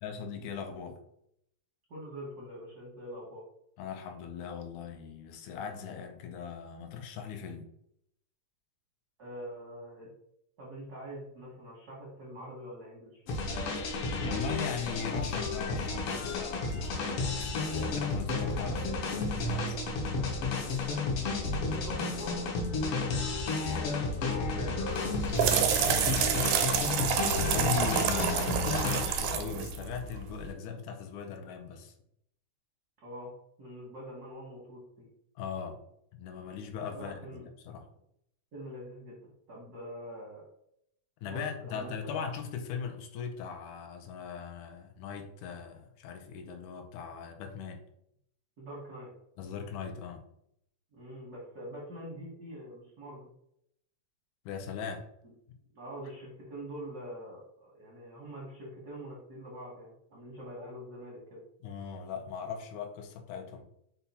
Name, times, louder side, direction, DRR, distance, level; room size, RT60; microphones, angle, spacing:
voice 1, 0.0-1.0 3.8-7.7 14.2-19.8 27.3-31.9 35.4-35.8 36.1-37.2 37.6-37.9 41.2-47.8 49.4-50.3 54.5-55.1 61.6-63.6, left 7 dB, 85° left, 5 dB, 2.1 m, -39 dB
voice 2, 1.9-3.4 9.2-10.1 10.6-13.2 20.9-26.5 33.0-33.3 33.6-35.1 36.9-37.4 38.5-40.4 41.2-41.4 41.7-42.3 48.6-49.1 50.9-53.2 55.2-55.3 55.7-61.4, equal, 65° right, -4 dB, 0.9 m, -45 dB
sound 1, 13.3-29.4, left 3 dB, 70° left, 1.5 m, -32 dB
sound 2, 24.9-30.5, right 7 dB, 85° right, 2.0 m, -29 dB
5.7 x 2.3 x 4.0 m, 0.73 s
omnidirectional pair, 3.4 m